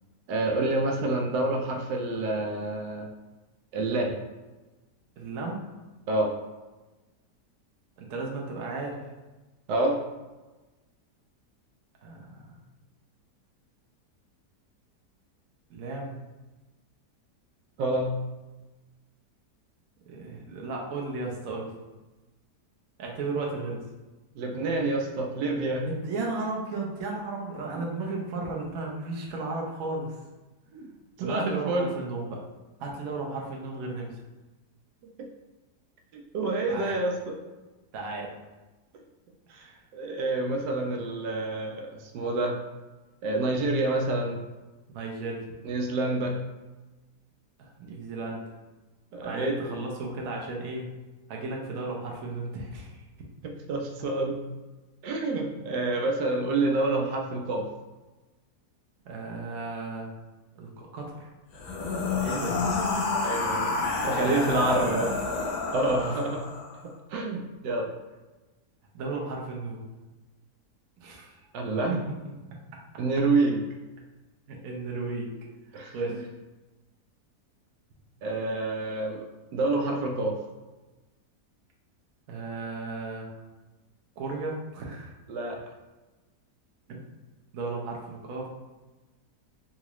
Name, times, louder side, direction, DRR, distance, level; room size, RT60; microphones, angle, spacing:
voice 1, 0.3-3.1 3.7-4.1 6.1-6.3 9.7-10.0 17.8-18.1 24.3-25.8 30.7-30.8 31.2-31.9 36.1-37.4 39.5-39.7 39.9-42.6 43.2-44.4 45.6-46.4 49.1-49.7 53.4-54.4 55.0-57.7 63.2-63.7 64.0-65.1 65.7-66.4 67.1-67.9 71.5-72.0 73.0-73.6 75.7-76.2 78.2-79.2 79.5-80.4 85.3-85.6, right 2 dB, 85° right, 1 dB, 1.2 m, -27 dB
voice 2, 5.2-5.6 8.0-9.0 12.0-12.6 15.7-16.2 20.0-21.7 23.0-23.8 25.8-30.2 31.2-32.4 32.8-34.2 36.7-36.9 37.9-38.3 39.6-39.8 44.9-45.5 47.6-48.4 49.2-50.9 51.3-53.0 55.7-55.8 59.0-60.1 60.6-61.3 62.2-62.7 64.2-65.1 65.8-66.3 68.9-69.8 71.0-71.5 71.9-72.0 74.5-75.3 75.9-76.2 82.3-83.4 84.2-85.1 86.9-87.1 87.5-88.5, right 3 dB, 65° right, -1 dB, 1.0 m, -35 dB
sound 1, 61.5-66.8, left 3 dB, 70° left, 1.0 m, -29 dB
3.8 x 2.4 x 3.0 m, 1.1 s
omnidirectional pair, 1.8 m